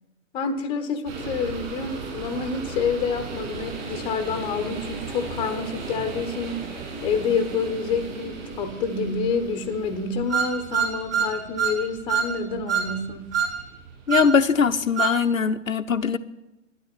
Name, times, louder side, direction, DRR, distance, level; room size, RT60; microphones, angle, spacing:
voice 1, 0.3-6.6 7.0-13.3, left 5 dB, 10° left, 9 dB, 1.0 m, -28 dB
sound 1, 1.1-15.0, right 4 dB, 35° right, 5.4 m, -37 dB
sound 2, 10.3-11.8 12.1-12.3 12.7-12.9 13.3-13.6 14.1-14.3 15.0-15.2, right 7 dB, 15° right, 1.7 m, -24 dB
voice 2, 14.1-16.2, left 6 dB, 75° left, 8 dB, 0.9 m, -21 dB
12.5 x 10.0 x 8.6 m, 0.97 s
figure-of-eight pair, 125°, 40 cm